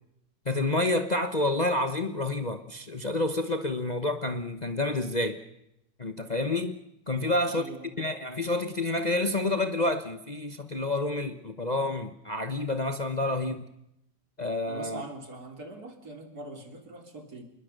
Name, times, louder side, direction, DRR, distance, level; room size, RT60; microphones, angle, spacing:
voice 1, 0.5-5.4 6.0-6.8 7.1-7.6 8.0-13.7 14.4-15.0, left 2 dB, 30° left, 1.1 m, -29 dB
voice 2, 7.3-7.9 14.7-17.4, right 2 dB, 60° right, 4.0 m, -42 dB
28.0 x 21.0 x 6.7 m
omnidirectional pair, 1.8 m